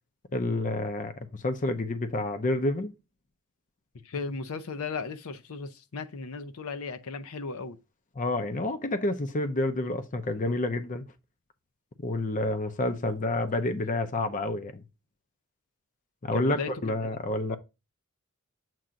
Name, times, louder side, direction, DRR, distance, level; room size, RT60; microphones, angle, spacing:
voice 1, 0.3-2.9 8.2-11.0 12.0-14.8 16.2-17.6, left 2 dB, 35° left, 0.6 m, -29 dB
voice 2, 4.0-7.8 16.3-16.7 17.5-17.6, left 4 dB, 75° left, 0.6 m, -36 dB
7.6 x 2.5 x 5.6 m
head